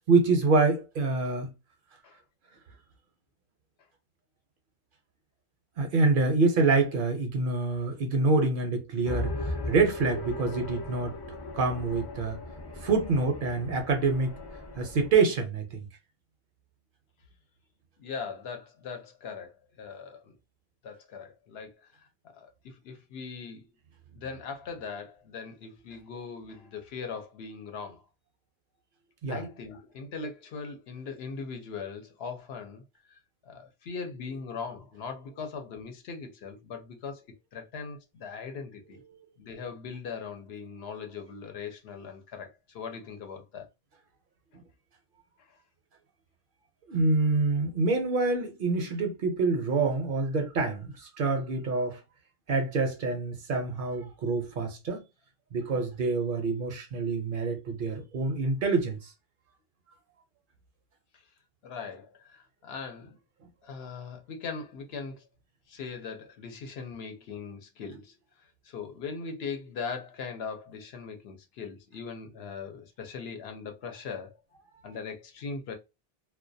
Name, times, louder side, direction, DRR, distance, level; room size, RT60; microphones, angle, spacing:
voice 1, 0.1-1.5 5.8-11.2 11.5-12.4 12.8-14.3 14.8-15.9 29.2-29.4 39.1-39.2 46.9-52.0 52.5-55.0 55.5-59.1, right 3 dB, 60° right, 0.7 m, -26 dB
sound 1, 9.0-15.1, left 2 dB, 40° left, 0.4 m, -37 dB
voice 2, 18.0-20.4 20.8-22.1 22.3-23.7 24.1-28.0 29.3-32.8 33.1-37.2 37.5-39.0 39.4-43.7 45.5-45.6 61.6-63.2 63.6-65.2 65.7-74.4 74.8-75.8, left 5 dB, 75° left, 0.8 m, -40 dB
2.2 x 2.2 x 2.5 m
omnidirectional pair, 1.1 m